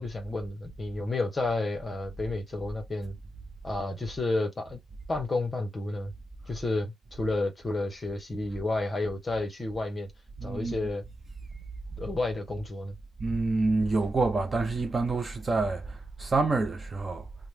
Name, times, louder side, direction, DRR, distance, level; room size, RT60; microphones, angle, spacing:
voice 1, 0.0-3.1 3.6-4.8 5.1-6.1 6.5-10.1 10.4-11.0 12.0-12.9, left 2 dB, 20° left, 0.8 m, -31 dB
voice 2, 10.4-10.8 13.2-17.3, right 3 dB, 20° right, 0.4 m, -27 dB
2.9 x 2.0 x 3.2 m
cardioid pair, 170°, 0 cm